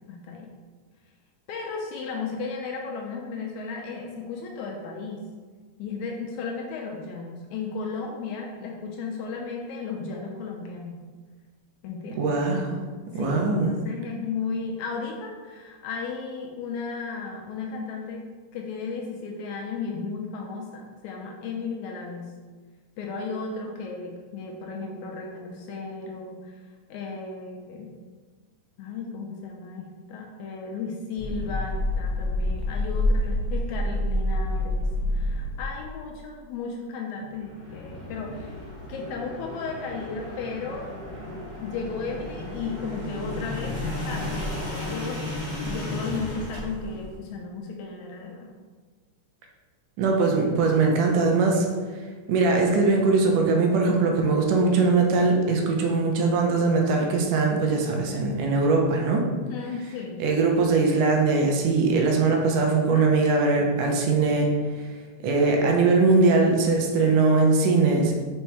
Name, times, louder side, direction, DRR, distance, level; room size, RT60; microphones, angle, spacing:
voice 1, 0.1-0.5 1.5-5.2 5.8-11.0 11.8-12.3 13.1-18.3 18.5-22.3 23.0-26.6 26.9-27.9 28.8-38.6 38.9-40.9 41.6-48.5 59.4-60.2 62.9-63.1, left 4 dB, 80° left, 0 dB, 1.8 m, -35 dB
voice 2, 12.2-12.8 13.1-13.7 50.0-51.7 52.3-59.2 60.2-64.5 65.2-68.2, right 3 dB, 80° right, 1 dB, 2.4 m, -21 dB
sound 1, 31.2-35.8 37.3-47.2, left 1 dB, 25° left, 0.6 m, -30 dB
5.2 x 4.5 x 4.7 m, 1.4 s
omnidirectional pair, 3.7 m